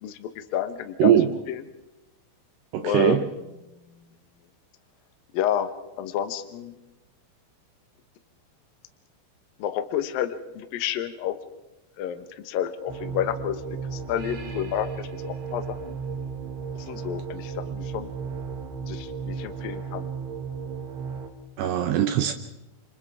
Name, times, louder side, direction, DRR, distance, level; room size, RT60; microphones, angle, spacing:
voice 1, 0.0-1.6 2.8-3.4 5.3-5.7 6.0-6.8 9.6-11.4 12.0-13.6 13.9-16.0 16.8-18.1 18.9-20.0, left 10 dB, 75° left, 8 dB, 2.1 m, -30 dB
voice 2, 1.0-1.3 2.7-3.2 21.6-22.3, right 10 dB, 80° right, 7 dB, 2.4 m, -21 dB
sound 1, 12.9-21.3, right 5 dB, 60° right, 3.7 m, -34 dB
29.5 x 27.0 x 3.6 m, 1.0 s
omnidirectional pair, 6.0 m